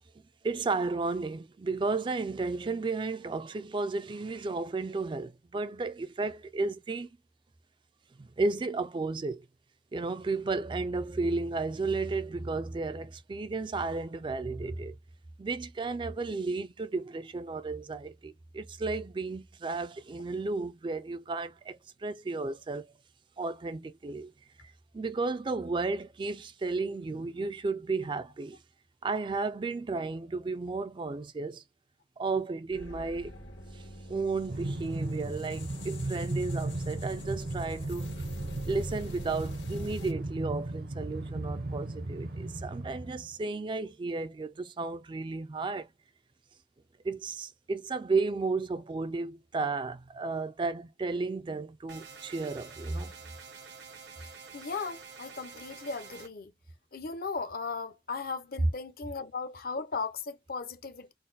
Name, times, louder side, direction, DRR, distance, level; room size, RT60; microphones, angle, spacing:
voice 1, 0.4-7.1 8.2-9.4 9.9-15.0 15.4-22.9 23.4-24.3 24.6-28.6 29.0-31.6 32.2-33.4 33.7-33.8 34.1-38.1 38.7-45.9 47.0-53.1, right 3 dB, 25° right, 0.3 m, -33 dB
sound 1, 32.7-40.1, equal, 90° left, 1.5 m, -46 dB
Train, 34.5-43.4, right 2 dB, 55° right, 0.7 m, -36 dB
sound 2, 51.9-56.3, right 5 dB, 80° right, 1.2 m, -48 dB
voice 2, 54.5-56.5 56.9-61.1, left 4 dB, 55° left, 0.6 m, -37 dB
3.9 x 2.1 x 4.0 m
head